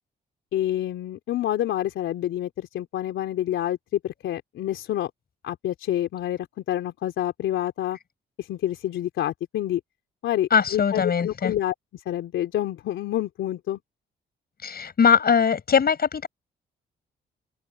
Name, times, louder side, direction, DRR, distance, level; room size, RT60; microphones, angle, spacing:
voice 1, 0.5-5.1 5.4-8.0 8.4-9.8 10.2-13.8, left 12 dB, 75° left, 3.3 m, -28 dB
voice 2, 10.5-11.5 14.6-16.3, left 6 dB, 50° left, 7.3 m, -21 dB
open air
supercardioid pair, 65°, 20 cm